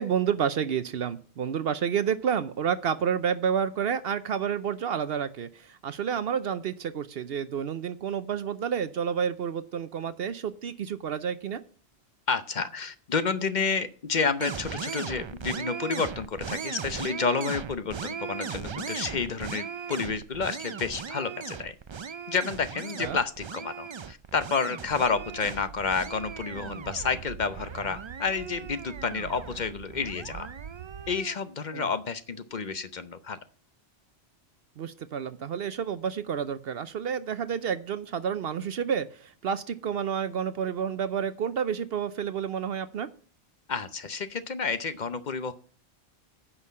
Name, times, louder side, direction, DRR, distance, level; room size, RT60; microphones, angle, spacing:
voice 1, 0.0-11.6 23.0-23.2 31.7-31.9 34.8-43.1, right 7 dB, 65° right, 13 dB, 0.8 m, -30 dB
voice 2, 12.3-21.7 22.3-30.5 31.1-33.4 43.7-45.5, left 5 dB, 45° left, 12 dB, 0.8 m, -30 dB
sound 1, 14.4-31.4, right 6 dB, 45° right, 0.4 m, -38 dB
sound 2, 25.0-31.2, right 8 dB, 90° right, 1.0 m, -45 dB
9.8 x 5.7 x 8.3 m, 0.43 s
omnidirectional pair, 1.1 m